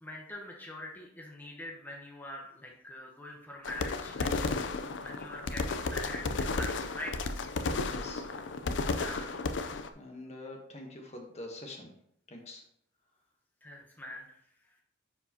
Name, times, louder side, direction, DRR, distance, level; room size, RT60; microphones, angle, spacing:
voice 1, 0.0-7.3 8.9-9.5 13.6-14.4, left 1 dB, 10° left, -2 dB, 1.0 m, -44 dB
sound 1, 3.6-9.9, left 3 dB, 80° left, 0.5 m, -33 dB
voice 2, 7.8-8.2 9.9-11.9 12.3-12.6, left 2 dB, 40° left, 2 dB, 1.1 m, -45 dB
9.7 x 4.7 x 2.9 m, 0.71 s
head